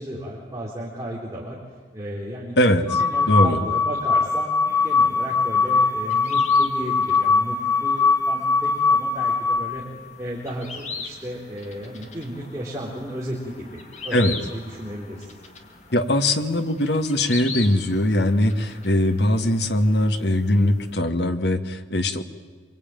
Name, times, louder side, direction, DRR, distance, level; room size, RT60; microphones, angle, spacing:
voice 1, 0.0-1.6 1.9-7.6 7.8-9.8 10.2-13.7 14.0-15.3, right 1 dB, 15° right, -4 dB, 4.1 m, -34 dB
voice 2, 2.6-3.0 3.3-3.6 14.1-14.4 15.9-22.2, left 1 dB, 65° left, 8 dB, 1.7 m, -21 dB
sound 1, 2.9-9.9, left 4 dB, 20° left, 2.0 m, -21 dB
sound 2, 4.7-20.9, left 4 dB, 40° left, 2.6 m, -41 dB
26.0 x 24.5 x 9.2 m, 1.5 s
head